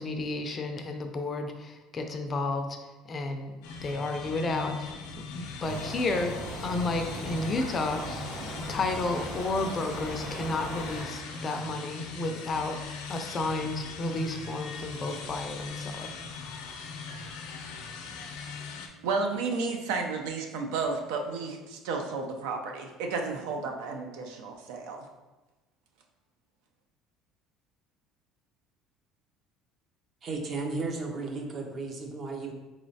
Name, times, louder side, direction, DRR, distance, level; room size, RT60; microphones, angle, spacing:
voice 1, 0.0-2.8 3.1-3.5 3.8-4.9 5.3-8.3 8.7-12.8 13.1-16.1, left 2 dB, 30° left, 5 dB, 0.4 m, -32 dB
sound 1, 3.6-18.9, left 5 dB, 85° left, 0.5 m, -40 dB
sound 2, 5.6-11.0, right 1 dB, 60° right, 1.2 m, -39 dB
voice 2, 19.0-25.1, right 4 dB, 85° right, 3 dB, 0.5 m, -32 dB
voice 3, 30.2-32.5, right 3 dB, 35° right, 3 dB, 0.5 m, -34 dB
3.8 x 3.1 x 2.7 m, 1.1 s
cardioid pair, 135°, 0 cm